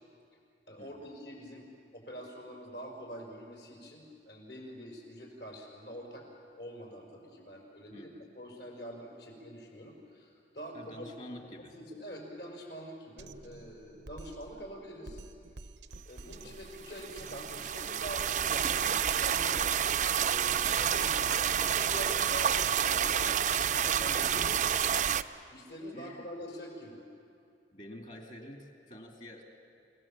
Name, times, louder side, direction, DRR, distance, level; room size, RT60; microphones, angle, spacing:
voice 1, 0.7-1.7 1.9-6.3 6.6-11.1 11.6-15.2 15.6-15.7 16.1-19.7 20.1-24.6 25.5-27.0, equal, 70° left, 0 dB, 5.6 m, -45 dB
voice 2, 7.9-8.2 10.7-11.7 23.8-24.6 25.9-26.3 27.7-29.4, left 1 dB, 45° left, 2 dB, 2.4 m, -48 dB
Drum kit, 13.2-21.2, right 2 dB, 80° right, 0.8 m, -50 dB
sound 1, 16.8-25.2, right 8 dB, 45° right, 0.5 m, -29 dB
28.5 x 18.0 x 7.4 m, 2.4 s
head